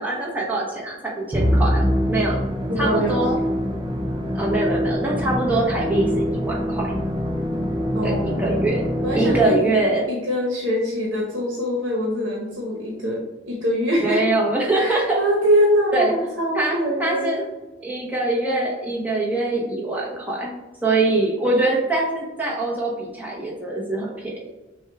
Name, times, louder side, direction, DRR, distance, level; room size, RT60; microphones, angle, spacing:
voice 1, 0.0-2.4 2.8-3.4 4.3-6.9 8.0-8.9 9.1-10.1 14.0-15.2 15.9-16.1 16.5-17.4 17.8-20.5 20.8-24.5, right 2 dB, 10° right, -3 dB, 0.9 m, -23 dB
Musical instrument, 1.3-9.8, equal, 25° right, 0.5 m, -24 dB
voice 2, 2.7-3.2 7.9-8.5 9.0-9.8 10.1-14.2 14.7-17.3, equal, 70° right, -3 dB, 0.9 m, -23 dB
6.2 x 2.3 x 3.4 m, 1.1 s
head